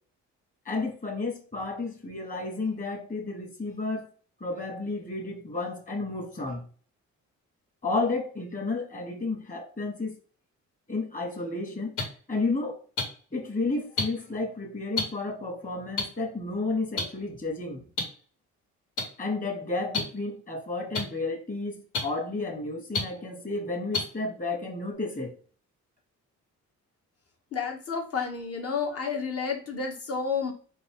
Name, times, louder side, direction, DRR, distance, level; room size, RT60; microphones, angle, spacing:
voice 1, 0.6-4.1 4.4-6.6 7.8-10.2 10.9-11.9 12.3-12.8 13.3-17.8 19.2-25.4, left 3 dB, 25° left, 1.5 m, -32 dB
sound 1, 12.0-12.1 13.0-13.1 14.0-14.1 14.9-15.0 16.0-16.1 17.0-17.1 18.0-18.1 19.0-19.1 19.9-20.0 20.9-21.0 21.9-22.0 22.9-23.0 23.9-24.0 24.9-25.0, left 3 dB, 90° left, 2.0 m, -26 dB
voice 2, 27.5-30.5, left 5 dB, 50° left, 1.4 m, -30 dB
4.3 x 2.6 x 3.6 m
cardioid pair, 90°, 30 cm